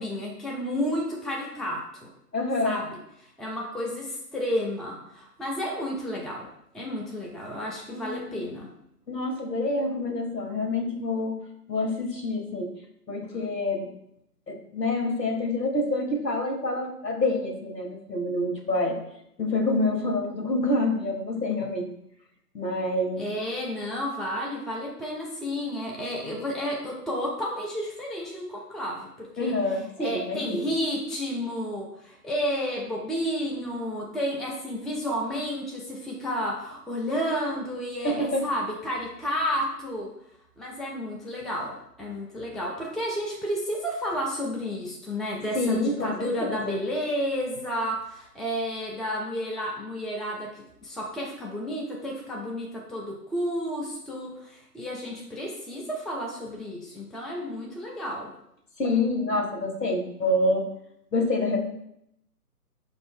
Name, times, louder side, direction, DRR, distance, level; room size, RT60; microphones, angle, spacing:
voice 1, 0.0-2.1 2.6-2.9 3.2-6.5 6.7-8.7 23.2-29.5 30.0-40.1 40.6-58.3, equal, ahead, -3 dB, 0.3 m, -31 dB
voice 2, 2.3-2.8 7.9-8.4 9.1-11.4 11.7-12.7 13.1-13.9 14.5-19.0 19.4-21.9 22.5-23.2 29.4-30.6 38.0-38.4 45.5-46.8 58.8-60.7 61.1-61.6, left 2 dB, 90° left, 2 dB, 1.1 m, -27 dB
5.0 x 2.5 x 3.5 m, 0.76 s
figure-of-eight pair, 140°, 48 cm